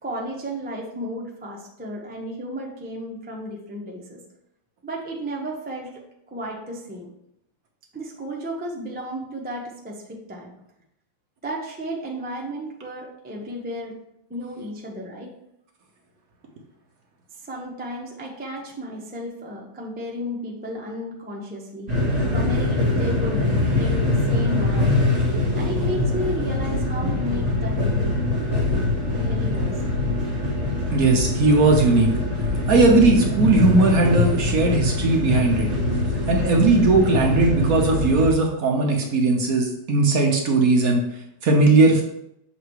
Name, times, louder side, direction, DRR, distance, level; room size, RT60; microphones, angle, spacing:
voice 1, 0.0-4.2 4.8-7.1 7.9-10.5 11.4-13.9 14.3-15.3 17.4-21.9 22.3-23.5 23.7-25.0 25.6-28.1 29.1-29.7, equal, 15° right, -1 dB, 0.4 m, -33 dB
sound 1, 21.9-38.3, left 2 dB, 40° right, 1.8 m, -23 dB
voice 2, 30.9-32.1 32.7-35.7 36.3-41.0 41.4-42.0, right 3 dB, 60° right, 1 dB, 1.1 m, -18 dB
6.8 x 3.2 x 4.7 m, 0.78 s
omnidirectional pair, 2.1 m